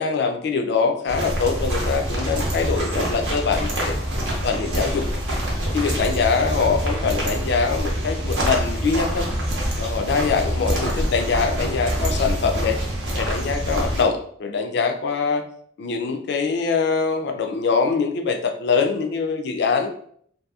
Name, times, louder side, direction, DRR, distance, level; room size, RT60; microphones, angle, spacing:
voice 1, 0.0-4.0 4.4-5.0 5.7-9.3 9.8-12.8 13.2-15.4 15.8-19.9, left 5 dB, 55° left, 5 dB, 0.4 m, -23 dB
sound 1, 1.1-14.0, equal, 65° right, 0.8 m, -25 dB
2.7 x 2.6 x 2.3 m, 0.62 s
head